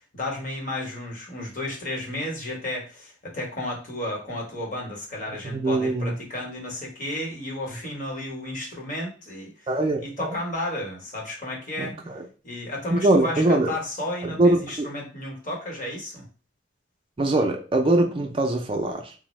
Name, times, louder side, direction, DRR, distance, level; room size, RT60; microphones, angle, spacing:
voice 1, 0.1-9.7 10.0-12.0 12.4-16.2, left 1 dB, 45° left, 1.0 m, -33 dB
voice 2, 5.4-6.1 9.7-10.4 11.8-12.3 12.9-13.7 14.2-14.9 17.2-19.1, right 2 dB, 30° right, 0.4 m, -22 dB
3.3 x 2.0 x 3.0 m
head